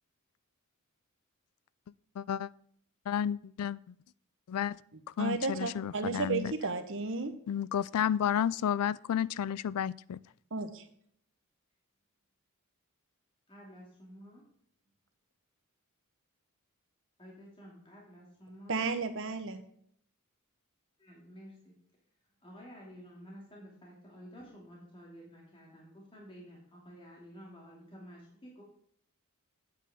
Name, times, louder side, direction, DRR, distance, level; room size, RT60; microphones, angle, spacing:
voice 1, 2.2-2.5 3.1-3.9 4.5-4.8 5.2-6.5 7.5-10.2, left 9 dB, 85° left, 0.3 m, -31 dB
voice 2, 5.2-7.3 10.5-10.8 18.7-19.6, right 4 dB, 60° right, 1.1 m, -33 dB
voice 3, 13.5-14.4 17.2-18.9 21.0-21.7 22.4-28.6, equal, 25° left, 2.4 m, -51 dB
8.7 x 8.3 x 3.6 m
head